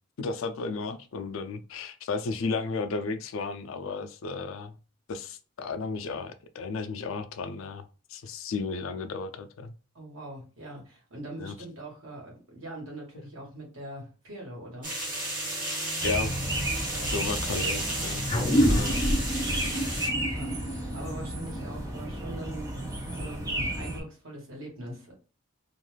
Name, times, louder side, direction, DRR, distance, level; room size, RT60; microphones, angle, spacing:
voice 1, 0.2-4.8 5.1-9.7 11.4-11.5 16.0-16.4 17.1-18.2 18.6-19.0, left 4 dB, 70° left, 0.4 m, -34 dB
voice 2, 9.9-14.9 16.9-17.2 18.7-18.9 20.2-25.1, right 1 dB, 75° right, 1.3 m, -42 dB
sound 1, 14.8-20.1, right 1 dB, 40° right, 1.1 m, -33 dB
sound 2, 16.0-24.0, right 1 dB, 15° right, 0.5 m, -33 dB
sound 3, 18.3-23.2, equal, 30° left, 0.6 m, -28 dB
2.4 x 2.3 x 3.2 m
head